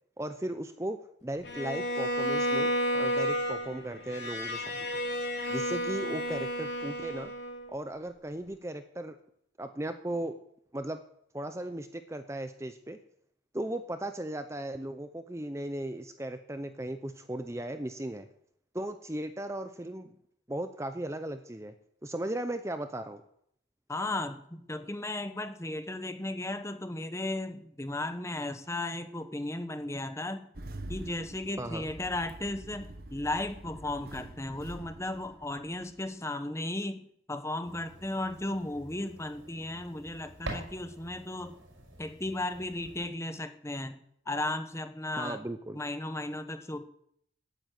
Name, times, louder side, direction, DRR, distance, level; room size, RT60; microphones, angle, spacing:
voice 1, 0.2-4.9 5.5-7.3 7.7-9.2 9.6-10.4 10.7-11.0 11.3-13.0 13.5-18.3 18.7-20.1 20.5-21.7 22.0-23.2 31.6-31.8 45.2-45.8, right 1 dB, 15° right, 9 dB, 0.7 m, -36 dB
Bowed string instrument, 1.4-7.7, equal, 55° left, 3.5 m, -32 dB
voice 2, 23.9-30.5 30.9-41.6 42.0-44.0 44.3-45.4 45.7-46.9, left 2 dB, 15° left, 10 dB, 1.1 m, -35 dB
Engine starting, 30.5-36.1, right 1 dB, 50° right, 1.3 m, -46 dB
sound 1, 37.6-43.1, right 1 dB, 75° right, 5.8 m, -46 dB
14.5 x 9.5 x 9.2 m, 0.71 s
head